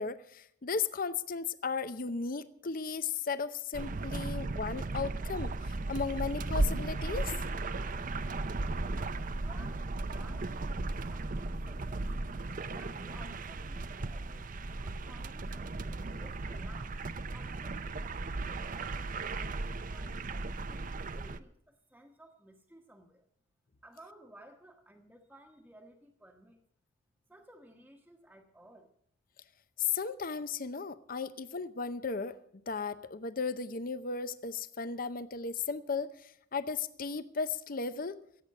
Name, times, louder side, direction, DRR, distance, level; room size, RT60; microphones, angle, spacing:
voice 1, 0.0-7.3 29.8-32.4 32.7-38.2, left 5 dB, 45° left, 13 dB, 0.7 m, -35 dB
sound 1, 3.7-21.4, right 2 dB, 45° right, 0.6 m, -36 dB
voice 2, 9.4-10.5 10.8-12.1 12.7-17.0 17.3-23.2 23.8-26.6 27.3-28.9, right 1 dB, 5° right, -3 dB, 1.1 m, -57 dB
16.0 x 8.3 x 7.6 m, 0.69 s
head